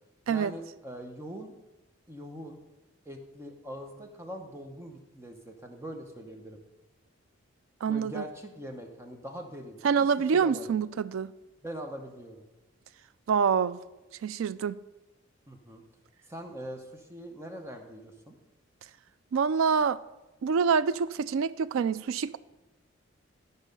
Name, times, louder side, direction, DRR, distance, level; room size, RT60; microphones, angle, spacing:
voice 1, 0.3-1.5 2.1-2.6 3.0-6.6 7.9-10.7 11.6-12.4 15.5-15.8 16.3-18.4, equal, 15° right, 0.8 m, -42 dB
voice 2, 7.8-8.2 9.8-11.3 13.3-13.8 14.2-14.8 19.3-20.0 20.4-22.4, right 6 dB, 80° right, 0.3 m, -26 dB
12.0 x 5.4 x 5.3 m
head